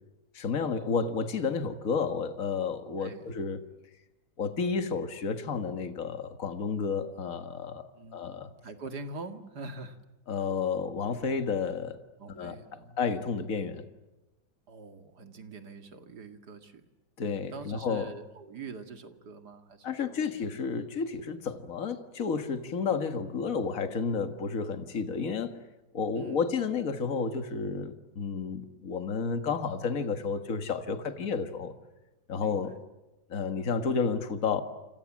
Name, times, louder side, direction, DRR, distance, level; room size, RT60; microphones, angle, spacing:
voice 1, 0.3-3.6 4.4-8.5 10.3-12.0 12.3-12.6 13.0-13.9 17.2-18.1 19.8-25.6 25.9-31.7 32.3-32.7 33.3-34.6, left 5 dB, 50° left, 2.1 m, -31 dB
voice 2, 3.0-3.4 7.9-10.0 12.2-13.1 14.7-16.9 17.5-20.3 26.2-26.7 32.4-32.8, right 3 dB, 65° right, 2.6 m, -44 dB
29.5 x 26.5 x 7.5 m
omnidirectional pair, 1.9 m